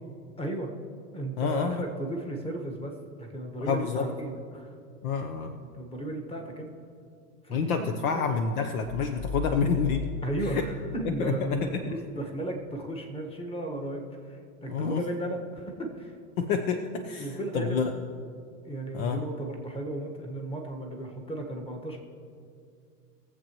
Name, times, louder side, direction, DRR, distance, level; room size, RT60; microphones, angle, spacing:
voice 1, 0.4-0.7 1.1-4.7 5.8-6.7 7.4-8.3 10.2-16.2 17.2-17.8 18.6-22.0, right 1 dB, 10° left, 2 dB, 1.4 m, -35 dB
voice 2, 1.4-1.9 3.6-4.1 5.0-5.6 7.5-10.1 10.4-10.7 11.0-11.9 14.7-15.0 16.4-17.9 18.9-19.2, left 5 dB, 65° left, 7 dB, 0.9 m, -28 dB
sound 1, 8.8-11.7, left 5 dB, 45° left, 1.9 m, -37 dB
22.0 x 7.6 x 3.0 m, 2.3 s
hypercardioid pair, 125°, 46 cm